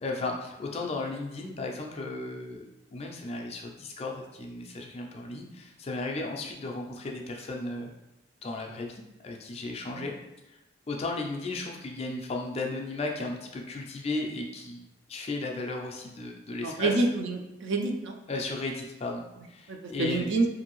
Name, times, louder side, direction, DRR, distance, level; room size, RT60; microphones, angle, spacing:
voice 1, 0.0-2.6 2.9-7.9 8.4-10.1 10.9-17.0 18.3-20.3, left 2 dB, 30° left, 1 dB, 0.3 m, -35 dB
voice 2, 16.6-18.2 20.0-20.5, right 2 dB, 60° right, 3 dB, 0.4 m, -27 dB
2.6 x 2.6 x 2.9 m, 0.98 s
head